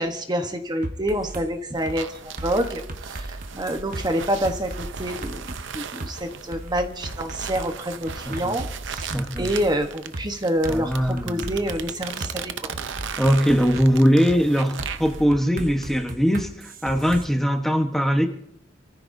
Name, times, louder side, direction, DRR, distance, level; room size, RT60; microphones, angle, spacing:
voice 1, 0.0-12.7, equal, 20° right, 6 dB, 1.1 m, -27 dB
sound 1, 0.8-1.5 1.9-2.0 2.4-4.1 4.4-5.6 6.0-6.1 6.5-9.7 10.1-10.3 10.6-12.3 12.7-13.9 14.3-14.4 14.8-17.2, right 1 dB, 45° right, 1.1 m, -36 dB
sound 2, 1.7-15.2, right 7 dB, 70° right, 0.7 m, -37 dB
voice 2, 9.1-9.5 10.7-11.6 13.2-18.3, equal, ahead, 4 dB, 1.1 m, -21 dB
27.5 x 14.5 x 2.7 m, 0.74 s
head